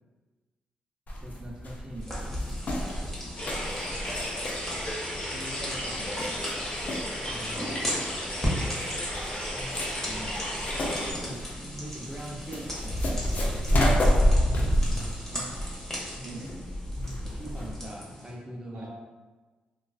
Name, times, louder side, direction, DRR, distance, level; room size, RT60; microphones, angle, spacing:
sound 1, 1.1-17.8, equal, 55° left, 0.4 m, -29 dB
voice 1, 1.2-2.8 7.3-7.9 9.4-9.8 11.1-13.9 14.9-15.1 16.1-16.4 16.9-18.9, equal, 25° right, -2 dB, 0.6 m, -42 dB
sound 2, 2.0-18.3, equal, 10° left, 0.9 m, -38 dB
sound 3, 3.4-11.1, equal, 35° left, 1.0 m, -34 dB
voice 2, 5.2-6.5 9.6-10.4 15.0-15.5 16.2-16.5 18.7-18.9, right 1 dB, 75° right, -3 dB, 0.6 m, -44 dB
2.4 x 2.3 x 2.3 m, 1.3 s
cardioid pair, 65°, 3 cm